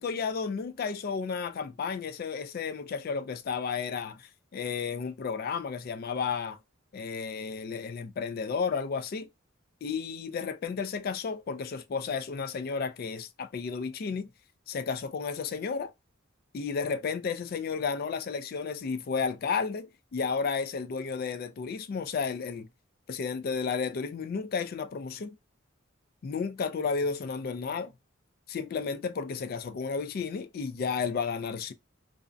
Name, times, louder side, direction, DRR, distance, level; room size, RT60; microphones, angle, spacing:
voice 1, 0.0-6.6 6.9-9.3 9.8-14.3 14.7-15.9 16.5-22.7 23.1-25.4 26.2-27.9 28.5-31.7, left 5 dB, 45° left, 0.3 m, -32 dB
2.5 x 2.0 x 2.5 m
head